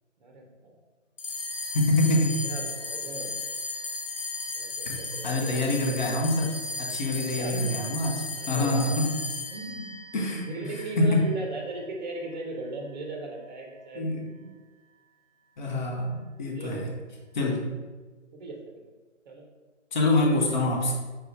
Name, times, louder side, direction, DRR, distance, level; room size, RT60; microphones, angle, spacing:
voice 1, 0.2-0.8 2.4-3.3 4.5-6.0 7.4-7.8 8.4-8.9 9.5-10.0 10.5-14.1 16.5-16.9 17.7-17.8 18.3-18.9 19.3-19.5 20.2-20.6, right 2 dB, 40° right, 1 dB, 0.6 m, -37 dB
sound 1, 1.2-11.8, left 3 dB, 85° left, 0.7 m, -35 dB
voice 2, 1.7-2.4 4.8-9.1 10.1-10.5 11.0-11.3 13.9-14.3 15.6-16.9 17.3-17.6 19.9-20.9, left 2 dB, 40° left, -1 dB, 0.7 m, -26 dB
4.6 x 2.4 x 3.1 m, 1.3 s
figure-of-eight pair, 135°, 37 cm